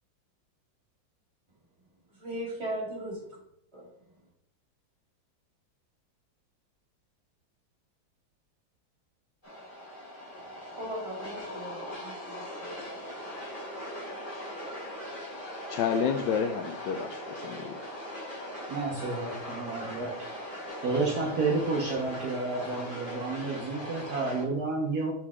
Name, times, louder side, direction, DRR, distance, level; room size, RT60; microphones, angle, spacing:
voice 1, 2.2-3.4 3.7-3.8 10.7-12.9, right 1 dB, 30° right, -4 dB, 3.4 m, -38 dB
sound 1, 9.4-24.4, equal, 25° left, 3.1 m, -40 dB
voice 2, 15.7-17.8, left 7 dB, 75° left, 7 dB, 1.1 m, -31 dB
voice 3, 18.7-20.4 20.8-25.1, right 3 dB, 60° right, -1 dB, 1.4 m, -31 dB
6.5 x 5.9 x 3.7 m, 0.77 s
omnidirectional pair, 2.1 m